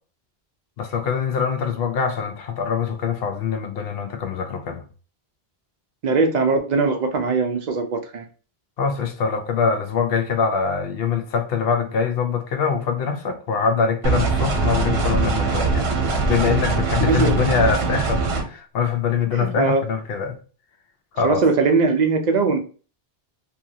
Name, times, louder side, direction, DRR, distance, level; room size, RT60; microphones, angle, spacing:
voice 1, 0.8-4.8 8.8-15.9 16.2-20.4 21.1-21.4, left 6 dB, 70° left, 0.8 m, -23 dB
voice 2, 6.0-8.2 17.0-17.4 19.3-19.8 21.2-22.6, right 4 dB, 55° right, 0.5 m, -20 dB
sound 1, 14.0-18.4, right 4 dB, 75° right, 0.9 m, -22 dB
2.8 x 2.4 x 2.6 m
omnidirectional pair, 1.1 m